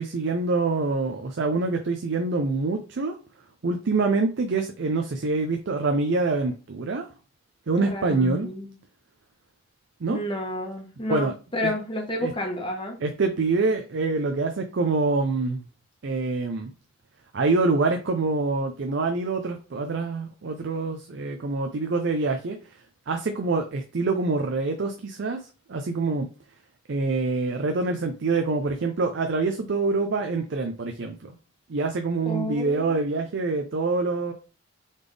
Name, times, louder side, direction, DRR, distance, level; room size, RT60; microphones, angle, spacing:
voice 1, 0.0-3.2 3.6-7.1 7.7-8.5 10.0-10.2 11.1-11.3 11.6-11.7 12.2-12.3 13.0-15.6 16.0-16.7 17.3-22.6 23.1-25.4 25.7-26.3 26.9-31.3 31.7-34.3, right 3 dB, 60° right, 5 dB, 0.5 m, -25 dB
voice 2, 7.8-8.7 10.1-13.0 32.3-33.0, left 1 dB, 25° left, 1 dB, 1.1 m, -30 dB
4.1 x 3.4 x 3.3 m, 0.33 s
head